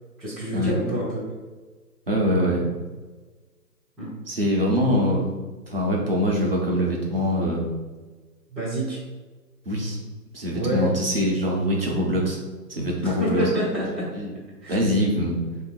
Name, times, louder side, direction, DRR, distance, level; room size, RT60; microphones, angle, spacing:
voice 1, 0.2-1.3 4.0-4.1 8.5-9.0 10.5-10.9 13.0-14.1 14.6-14.8, right 1 dB, ahead, -14 dB, 0.5 m, -27 dB
voice 2, 2.1-2.7 4.3-5.3 5.7-7.6 9.7-10.0 10.3-12.4 12.7-13.4 14.7-15.4, equal, 35° right, -2 dB, 0.7 m, -23 dB
3.7 x 2.7 x 3.9 m, 1.3 s
figure-of-eight pair, 145°, 50 cm